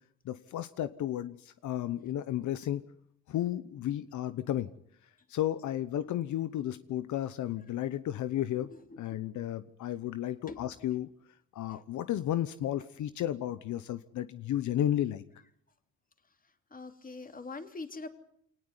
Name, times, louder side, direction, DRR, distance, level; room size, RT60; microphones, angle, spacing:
voice 1, 0.2-2.8 3.3-4.7 5.3-8.7 9.0-11.1 11.5-15.2, left 12 dB, 75° left, 13 dB, 1.0 m, -33 dB
voice 2, 8.5-9.4 10.5-10.7 11.7-11.8 16.7-18.1, left 3 dB, 30° left, 7 dB, 3.1 m, -44 dB
25.0 x 19.0 x 9.7 m, 0.69 s
cardioid pair, 90°, 30 cm